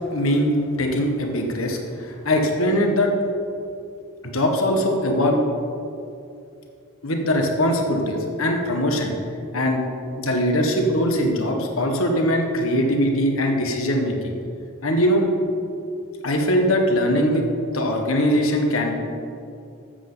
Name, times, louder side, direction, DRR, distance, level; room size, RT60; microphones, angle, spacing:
voice 1, 0.1-0.5 0.8-3.1 4.2-5.4 7.0-9.1 9.5-9.8 10.2-14.3 14.8-15.3 16.2-17.4 17.7-19.0, equal, 85° left, 2 dB, 1.5 m, -21 dB
13.5 x 8.3 x 4.0 m, 2.5 s
head